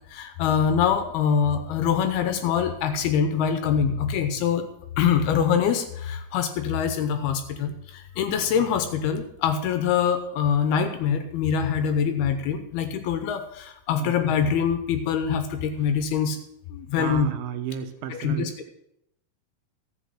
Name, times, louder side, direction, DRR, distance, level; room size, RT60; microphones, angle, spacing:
voice 1, 0.1-4.7 5.0-7.7 8.2-16.4 16.7-17.3 18.1-18.5, left 7 dB, 75° left, 8 dB, 2.7 m, -24 dB
voice 2, 17.0-18.7, right 7 dB, 70° right, 8 dB, 2.6 m, -33 dB
13.0 x 8.1 x 7.6 m, 0.77 s
omnidirectional pair, 4.9 m